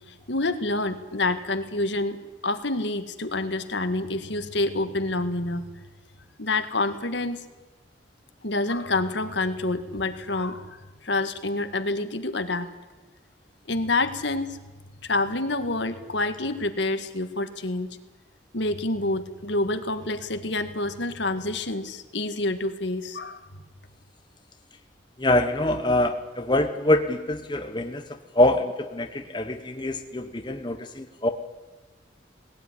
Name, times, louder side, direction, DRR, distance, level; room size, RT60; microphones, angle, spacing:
voice 1, 0.3-5.6 6.4-7.4 8.4-12.7 13.7-14.6 15.0-17.9 18.5-23.4, left 2 dB, 70° left, 9 dB, 1.8 m, -27 dB
voice 2, 25.2-28.0 28.3-31.3, left 1 dB, 25° left, 6 dB, 1.1 m, -24 dB
19.5 x 18.0 x 9.9 m, 1.2 s
head